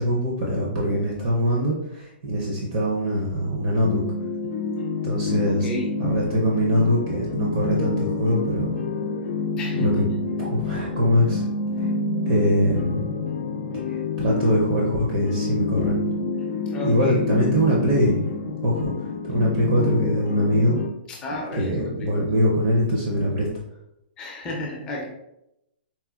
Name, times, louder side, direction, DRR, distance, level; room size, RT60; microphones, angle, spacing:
voice 1, 0.0-4.0 5.0-5.7 6.0-8.7 9.8-9.9 10.4-11.4 11.8-11.9 12.3-13.0 13.9-16.0 16.8-18.2 18.6-18.9 19.3-20.8 21.5-23.5, equal, 35° right, -3 dB, 0.6 m, -22 dB
sound 1, 3.8-20.9, left 3 dB, 90° left, 0.4 m, -28 dB
voice 2, 5.5-6.0 9.6-10.2 16.7-17.3 21.1-22.4 24.2-25.1, left 2 dB, 15° left, -3 dB, 0.4 m, -33 dB
4.2 x 2.1 x 2.3 m, 0.86 s
hypercardioid pair, 170°, 6 cm